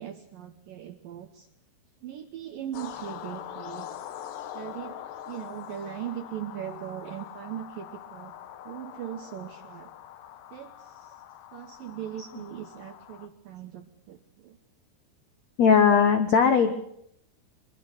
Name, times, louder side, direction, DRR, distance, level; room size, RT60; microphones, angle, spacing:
voice 1, 0.0-1.5 2.0-4.0 4.5-5.0 5.3-8.3 8.6-9.9 10.5-11.2 11.5-14.6, right 11 dB, 70° right, 7 dB, 2.2 m, -39 dB
sound 1, 2.7-13.3, left 10 dB, 70° left, 3.2 m, -43 dB
voice 2, 15.6-16.7, left 6 dB, 90° left, 7 dB, 1.5 m, -19 dB
24.0 x 23.0 x 6.2 m, 0.73 s
omnidirectional pair, 5.4 m